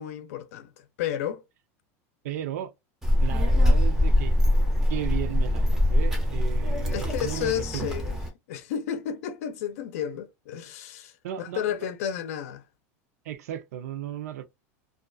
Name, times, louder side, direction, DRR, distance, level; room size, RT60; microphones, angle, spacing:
voice 1, 0.0-1.4 6.9-8.2 8.5-12.6, left 9 dB, 75° left, 0.5 m, -32 dB
voice 2, 2.2-2.7 3.2-4.3 4.9-7.9 11.2-11.6 13.2-14.4, right 11 dB, 85° right, 0.5 m, -35 dB
Child speech kid speaking, 3.0-8.3, left 1 dB, 5° right, 0.5 m, -23 dB
2.4 x 2.3 x 2.5 m
supercardioid pair, 165°, 8 cm